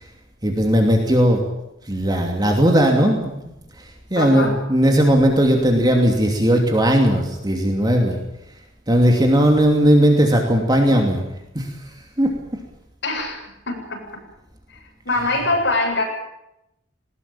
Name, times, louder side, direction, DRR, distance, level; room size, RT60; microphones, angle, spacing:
voice 1, 0.4-1.4 1.9-3.4 4.1-8.2 8.9-11.2 11.5-11.7 12.2-12.3, equal, 20° right, 2 dB, 2.8 m, -17 dB
voice 2, 4.2-4.5 13.0-14.0 15.0-16.0, left 2 dB, 65° left, 1 dB, 7.9 m, -23 dB
20.0 x 20.0 x 8.9 m, 0.84 s
head